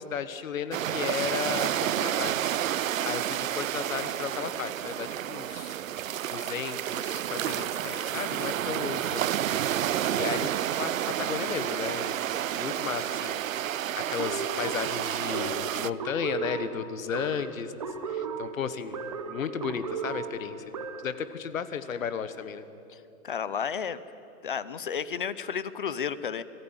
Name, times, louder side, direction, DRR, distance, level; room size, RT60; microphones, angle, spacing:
voice 1, 0.0-2.6 3.0-5.8 6.3-9.8 10.1-10.5 10.8-12.2 12.5-17.7 18.0-19.0 19.3-20.6 21.0-22.6, left 7 dB, 70° left, 13 dB, 1.4 m, -34 dB
sound 1, 0.7-15.9, right 11 dB, 65° right, 0.6 m, -30 dB
sound 2, 14.2-21.2, right 5 dB, 25° right, 0.8 m, -36 dB
voice 2, 22.9-24.0 24.4-26.4, left 7 dB, 40° left, 16 dB, 0.6 m, -32 dB
22.0 x 14.5 x 9.7 m, 2.9 s
hypercardioid pair, 180°, 42 cm